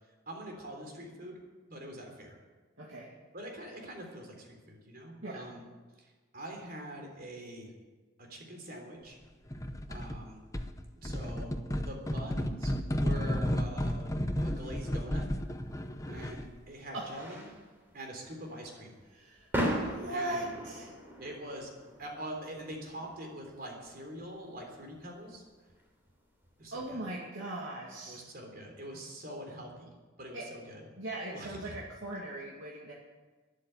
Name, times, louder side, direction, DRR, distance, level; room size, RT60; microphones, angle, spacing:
voice 1, 0.3-1.4 1.7-2.4 3.3-5.6 6.0-7.7 8.2-9.2 9.9-10.4 11.0-11.5 11.8-14.1 14.4-15.3 16.1-17.5 17.9-19.0 20.1-20.4 21.2-21.7 22.0-25.4 26.6-27.0 28.1-29.9 30.2-30.8 31.3-31.8, right 1 dB, 50° right, 2 dB, 3.5 m, -44 dB
voice 2, 2.8-3.1 5.2-5.5 16.9-17.1 19.1-20.9 26.7-28.2 30.3-30.5 31.0-32.9, right 1 dB, 85° right, -4 dB, 2.3 m, -39 dB
sound 1, 9.5-10.2 10.5-16.6, equal, 15° left, 0.8 m, -33 dB
sound 2, 15.6-26.9, equal, 10° right, 3.3 m, -40 dB
13.0 x 10.5 x 9.2 m, 1.3 s
head